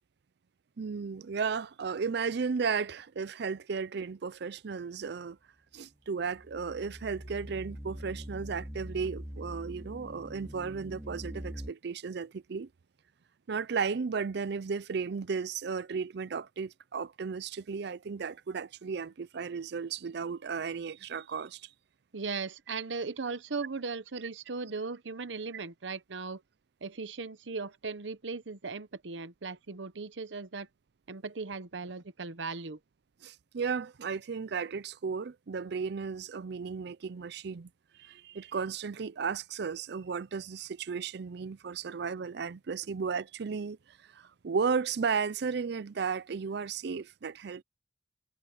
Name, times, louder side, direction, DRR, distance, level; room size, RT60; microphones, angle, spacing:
voice 1, 0.8-5.4 5.7-12.7 13.5-21.7 33.2-37.7 38.0-43.8 44.1-47.6, right 5 dB, 65° right, 0.5 m, -34 dB
sound 1, 6.0-11.7, equal, 15° right, 2.3 m, -43 dB
voice 2, 22.1-26.4 26.8-30.7 31.1-32.8, right 4 dB, 90° right, 1.0 m, -38 dB
head